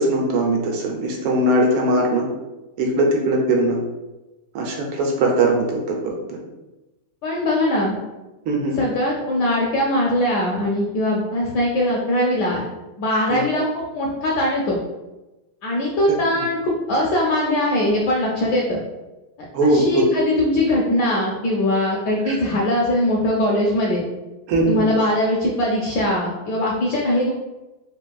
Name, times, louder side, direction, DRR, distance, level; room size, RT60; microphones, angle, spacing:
voice 1, 0.0-2.3 2.8-3.8 4.5-6.1 8.5-8.8 13.3-13.4 16.1-16.2 19.5-19.8 22.3-22.4 24.5-24.8, right 1 dB, 80° right, 0 dB, 1.5 m, -20 dB
voice 2, 7.2-8.0 8.7-12.6 13.0-14.8 15.6-18.8 19.6-24.0 24.7-27.3, left 1 dB, 75° left, -3 dB, 0.9 m, -21 dB
3.6 x 2.5 x 2.2 m, 1.1 s
omnidirectional pair, 2.3 m